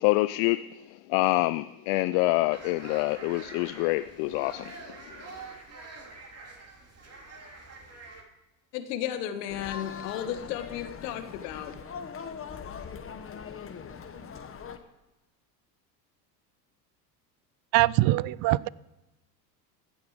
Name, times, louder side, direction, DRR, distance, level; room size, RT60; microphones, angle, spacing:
voice 1, 0.0-4.8, left 20 dB, 55° left, 0.5 m, -26 dB
sound 1, 2.5-8.2, right 3 dB, 30° right, 3.1 m, -46 dB
voice 2, 8.7-11.7, left 10 dB, 70° left, 1.7 m, -34 dB
sound 2, 9.5-14.8, left 6 dB, 25° left, 1.4 m, -41 dB
voice 3, 17.7-18.7, right 18 dB, 45° right, 0.4 m, -23 dB
15.5 x 9.7 x 5.0 m
hypercardioid pair, 85°, 50 cm